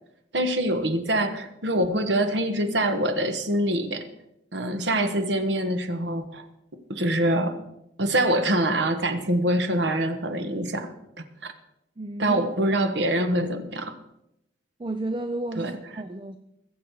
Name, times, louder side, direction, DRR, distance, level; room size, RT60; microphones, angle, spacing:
voice 1, 0.3-4.0 4.5-6.4 6.9-7.6 8.0-10.9 11.4-11.5 12.2-13.9 15.6-15.7, right 1 dB, 70° right, 1.4 m, -24 dB
voice 2, 12.0-12.8 14.8-16.4, right 2 dB, 25° right, 0.5 m, -33 dB
22.0 x 7.4 x 4.7 m
head